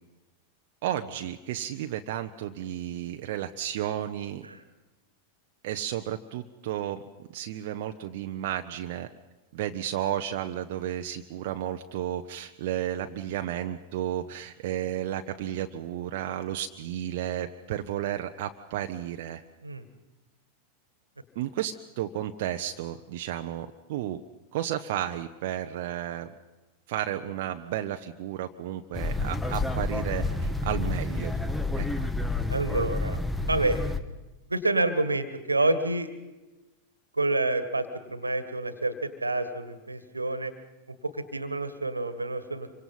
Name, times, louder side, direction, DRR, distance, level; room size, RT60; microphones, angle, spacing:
voice 1, 0.8-4.5 5.6-9.1 9.5-19.4 21.3-24.2 24.5-26.3 26.9-31.4 31.7-31.9, right 11 dB, 50° right, 5 dB, 1.0 m, -33 dB
sound 1, 28.9-34.0, left 2 dB, 5° left, 1.5 m, -29 dB
voice 2, 32.5-33.2 33.5-33.8 34.5-36.1 37.1-40.5 40.9-42.7, right 2 dB, 80° right, 13 dB, 1.9 m, -28 dB
27.0 x 24.5 x 5.7 m, 1.1 s
figure-of-eight pair, 90°, 0 cm